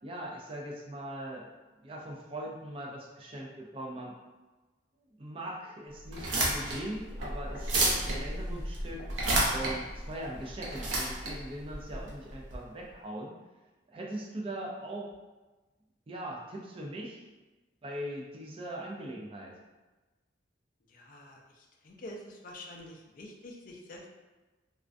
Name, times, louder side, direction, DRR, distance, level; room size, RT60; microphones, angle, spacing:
voice 1, 0.0-1.5 1.8-4.2 5.2-9.0 9.5-13.3 13.9-15.1 16.1-17.3 17.8-19.6, right 1 dB, 30° right, -2 dB, 0.4 m, -40 dB
sound 1, 6.1-12.6, right 1 dB, 90° right, 0.6 m, -31 dB
voice 2, 20.9-24.1, left 1 dB, 45° left, 0 dB, 0.4 m, -47 dB
2.4 x 2.1 x 2.4 m, 1.2 s
head